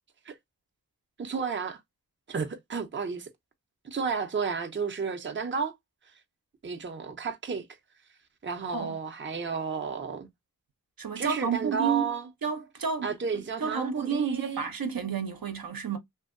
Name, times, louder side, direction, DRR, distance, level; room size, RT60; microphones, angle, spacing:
voice 1, 1.2-1.8 2.3-3.3 3.8-5.8 6.6-7.6 8.4-10.3 11.2-12.3 13.0-14.7, right 5 dB, 30° right, 0.6 m, -32 dB
voice 2, 11.0-12.1 12.4-16.0, right 6 dB, 65° right, 0.7 m, -31 dB
2.7 x 2.7 x 2.5 m
wide cardioid pair, 55°, 37 cm